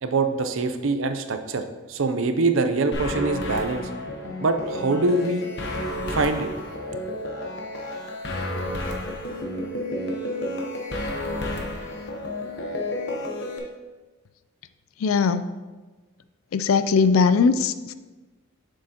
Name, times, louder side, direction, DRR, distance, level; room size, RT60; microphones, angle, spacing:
voice 1, 0.0-3.9 4.4-5.5 6.1-6.5, right 3 dB, 65° right, 8 dB, 0.5 m, -24 dB
sound 1, 2.9-13.6, left 1 dB, 55° left, 0.9 m, -31 dB
voice 2, 15.0-15.4 16.5-17.9, left 5 dB, 75° left, 12 dB, 0.4 m, -20 dB
7.5 x 6.5 x 2.9 m, 1.3 s
head